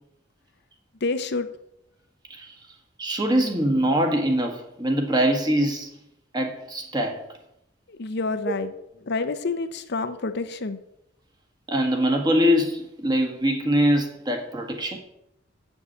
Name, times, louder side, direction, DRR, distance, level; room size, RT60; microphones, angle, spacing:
voice 1, 1.0-1.5 7.9-8.7 9.1-10.8, left 3 dB, 60° left, 0.7 m, -28 dB
voice 2, 3.0-5.9 6.3-7.2 8.5-8.6 11.7-15.0, equal, 20° right, 1.7 m, -23 dB
8.0 x 7.2 x 8.1 m
head